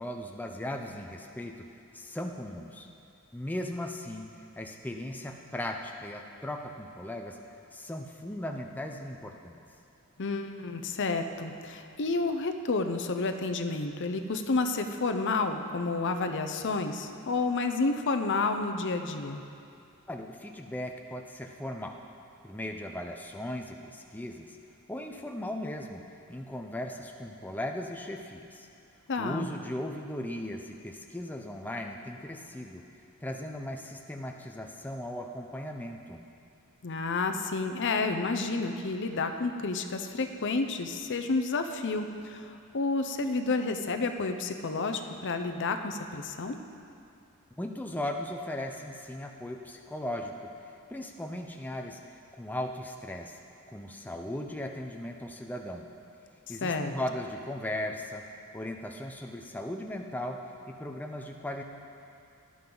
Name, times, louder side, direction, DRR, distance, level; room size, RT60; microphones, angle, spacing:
voice 1, 0.0-1.5 1.9-2.9 3.3-4.3 4.6-7.4 7.7-9.6 20.1-21.9 22.4-24.6 24.9-26.0 26.3-28.7 29.2-32.8 33.2-36.2 47.6-50.3 50.9-52.0 52.3-53.4 53.7-55.9 56.5-58.2 58.5-60.4 60.7-61.6, left 1 dB, 10° left, 2 dB, 0.6 m, -37 dB
voice 2, 10.2-19.4 29.1-29.5 36.8-46.6 56.6-56.9, left 3 dB, 55° left, 7 dB, 0.7 m, -30 dB
17.5 x 11.0 x 3.9 m, 2.5 s
head